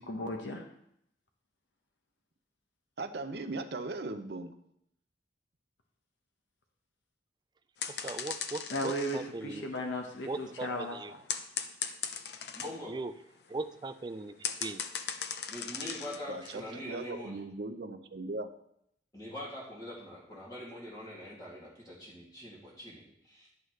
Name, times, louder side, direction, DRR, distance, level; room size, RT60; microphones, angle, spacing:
voice 1, 0.1-0.6 8.7-11.0, equal, 80° left, 2 dB, 1.0 m, -35 dB
voice 2, 3.0-4.5 16.3-18.5, right 2 dB, 60° right, 7 dB, 0.6 m, -38 dB
sound 1, 7.8-12.8 13.4-13.5 13.7-17.1, left 7 dB, 60° left, 0.5 m, -38 dB
voice 3, 7.9-9.7 10.3-11.2 12.9-13.1 13.5-14.8, right 3 dB, 25° right, 9 dB, 0.3 m, -39 dB
voice 4, 12.5-13.0 15.5-17.4 19.1-23.5, left 1 dB, 20° left, -6 dB, 2.4 m, -43 dB
10.5 x 6.4 x 3.2 m, 0.76 s
head